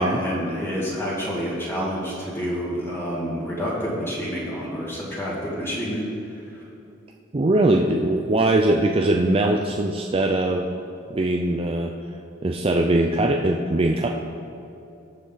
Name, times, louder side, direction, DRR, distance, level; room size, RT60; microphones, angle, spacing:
voice 1, 0.0-6.6, equal, 10° left, -6 dB, 2.3 m, -28 dB
voice 2, 7.3-10.7 11.1-11.9 12.4-14.1, right 2 dB, 30° right, 2 dB, 0.5 m, -21 dB
18.5 x 6.6 x 4.0 m, 2.8 s
head